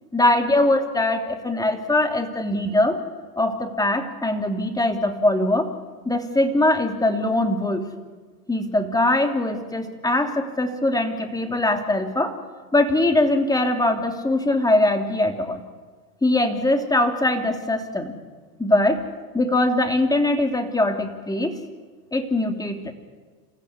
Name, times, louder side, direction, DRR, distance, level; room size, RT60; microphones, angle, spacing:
voice 1, 0.1-3.0 3.4-5.7 6.0-7.9 8.5-12.4 12.7-15.6 16.2-18.2 18.6-18.9 19.3-21.5 22.1-22.9, left 1 dB, 5° left, 5 dB, 2.8 m, -21 dB
28.0 x 15.0 x 9.5 m, 1.5 s
hypercardioid pair, 110°, 49 cm